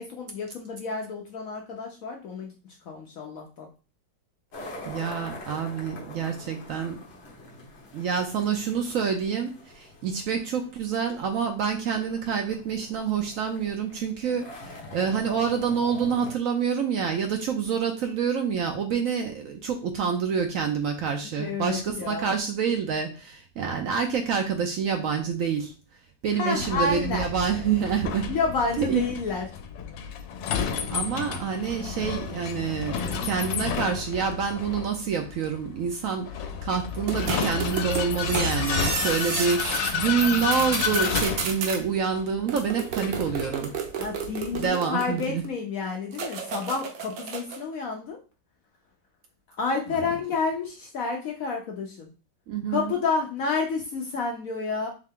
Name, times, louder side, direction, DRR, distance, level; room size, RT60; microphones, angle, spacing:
voice 1, 0.0-2.5 2.8-3.7 21.4-22.4 26.4-27.3 28.3-29.5 44.0-48.2 49.6-52.1 52.7-54.9, left 4 dB, 65° left, 1 dB, 0.9 m, -29 dB
sound 1, 4.5-16.3, left 1 dB, 40° left, 1.1 m, -44 dB
voice 2, 4.9-7.0 7.9-25.7 26.2-28.3 28.8-29.0 30.9-43.7 44.5-45.4 52.5-52.9, right 6 dB, 75° right, 4 dB, 0.8 m, -27 dB
Vehicle, 26.6-44.7, left 7 dB, 90° left, 1.3 m, -31 dB
sound 2, 37.1-39.9 40.2-41.8 42.5-45.5 46.1-47.6, right 6 dB, 90° right, 1.5 m, -32 dB
3.6 x 3.2 x 3.6 m, 0.34 s
omnidirectional pair, 1.9 m